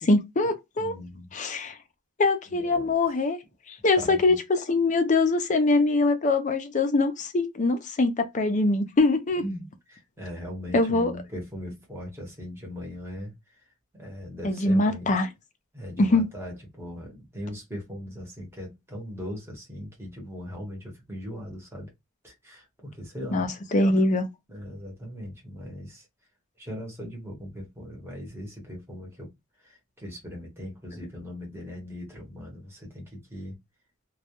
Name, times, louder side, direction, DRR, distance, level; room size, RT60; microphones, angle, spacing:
voice 1, 0.0-0.9 1.3-1.8 2.2-3.4 3.7-9.4 10.7-11.1 14.4-15.3 16.0-16.3 23.3-24.3, left 2 dB, 35° left, 0.4 m, -23 dB
voice 2, 0.8-1.3 2.5-3.0 4.0-4.4 9.4-13.7 13.9-15.2 15.7-21.9 22.2-23.5 24.5-26.1 26.6-29.3 29.6-33.6, equal, 10° right, 0.9 m, -39 dB
2.2 x 2.1 x 2.8 m
head